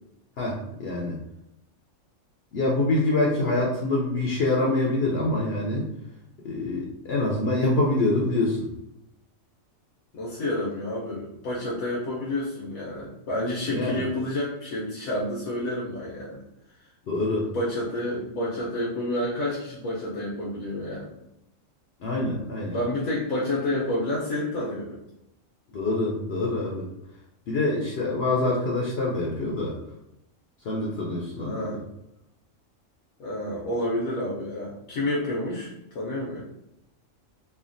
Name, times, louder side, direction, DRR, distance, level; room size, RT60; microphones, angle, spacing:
voice 1, 0.4-1.2 2.5-5.9 6.4-8.7 13.7-14.0 17.1-17.5 22.0-22.8 25.7-26.9 27.5-29.7 30.6-31.8, left 2 dB, 65° left, -3 dB, 0.6 m, -25 dB
voice 2, 10.1-16.4 17.5-21.1 22.7-25.0 31.4-31.8 33.2-36.4, left 1 dB, 90° left, -6 dB, 1.1 m, -29 dB
3.3 x 2.2 x 2.5 m, 0.83 s
omnidirectional pair, 1.4 m